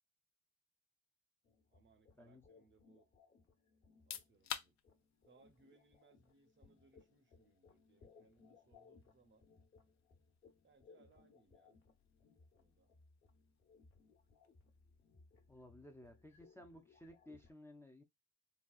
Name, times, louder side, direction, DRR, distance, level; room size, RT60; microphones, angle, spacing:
sound 1, 1.4-17.5, left 4 dB, 45° left, 1.1 m, -67 dB
voice 1, 1.7-3.1 4.0-4.8 5.2-9.5 10.6-11.8 12.5-12.9, right 4 dB, 40° right, 0.7 m, -70 dB
sound 2, 3.9-16.5, left 9 dB, 65° left, 0.5 m, -56 dB
voice 2, 15.5-18.0, left 1 dB, 10° left, 0.5 m, -57 dB
4.0 x 2.3 x 2.4 m
cardioid pair, 90°, 30 cm